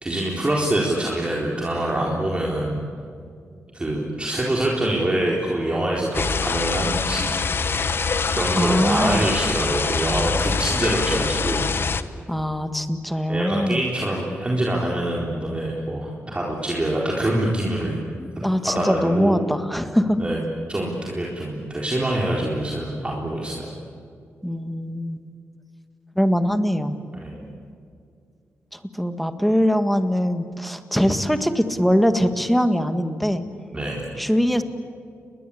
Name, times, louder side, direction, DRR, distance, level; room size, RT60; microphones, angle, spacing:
voice 1, 0.0-2.8 3.7-7.9 8.3-11.7 13.3-18.0 18.4-19.4 20.2-20.4 20.7-23.7 27.1-27.4 33.7-34.1, right 1 dB, 25° right, -3 dB, 4.1 m, -25 dB
sound 1, 6.1-12.0, left 5 dB, 50° left, 1.1 m, -24 dB
voice 2, 8.6-9.3 12.3-13.8 18.2-20.2 24.4-25.2 26.2-27.0 28.7-33.4 34.2-34.6, equal, ahead, 8 dB, 1.8 m, -22 dB
30.0 x 21.5 x 8.6 m, 2.4 s
cardioid pair, 95°, 5 cm